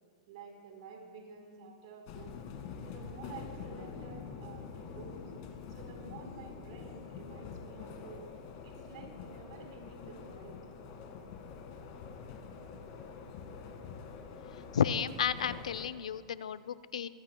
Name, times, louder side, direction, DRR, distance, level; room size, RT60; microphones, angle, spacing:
voice 1, 0.3-2.4 2.9-5.3 5.7-8.2 8.6-10.6, right 5 dB, 60° right, 1 dB, 4.0 m, -50 dB
sound 1, 2.1-15.9, left 6 dB, 45° left, 1.8 m, -46 dB
voice 2, 14.7-17.1, left 8 dB, 90° left, 15 dB, 0.5 m, -32 dB
24.0 x 15.0 x 2.3 m, 2.3 s
hypercardioid pair, 145°, 3 cm